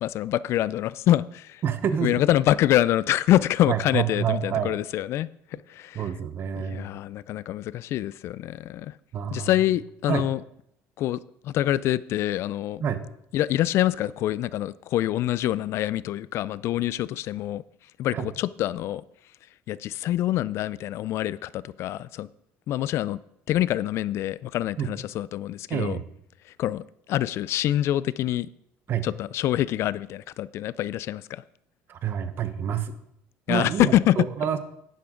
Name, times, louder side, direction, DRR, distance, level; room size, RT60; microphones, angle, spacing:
voice 1, 0.0-1.6 2.0-5.3 5.7-6.1 6.6-8.9 9.3-10.4 11.0-12.9 13.3-17.6 18.0-19.0 19.7-22.3 22.7-23.2 23.5-26.0 26.6-26.8 27.1-28.5 29.0-31.4 33.5-34.2, left 13 dB, 60° left, 0.4 m, -25 dB
voice 2, 1.6-2.2 3.7-4.8 5.9-6.9 9.1-9.5 10.1-10.2 12.8-13.0 18.1-18.3 24.8-24.9 25.7-26.0 28.9-29.1 31.9-32.9 33.5-34.6, right 8 dB, 45° right, 1.0 m, -28 dB
10.5 x 10.5 x 3.8 m
cardioid pair, 115°, 5 cm